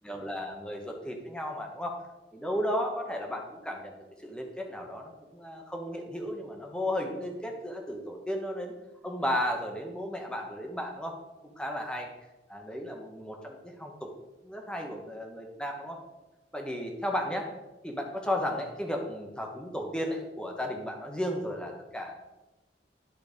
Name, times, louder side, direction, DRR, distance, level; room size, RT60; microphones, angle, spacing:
voice 1, 0.0-2.0 2.3-3.9 4.2-8.7 9.0-11.2 11.4-12.1 12.5-14.1 14.4-16.0 16.5-17.5 17.8-22.2, equal, 5° left, 2 dB, 1.1 m, -34 dB
11.0 x 4.5 x 5.1 m, 1.1 s
head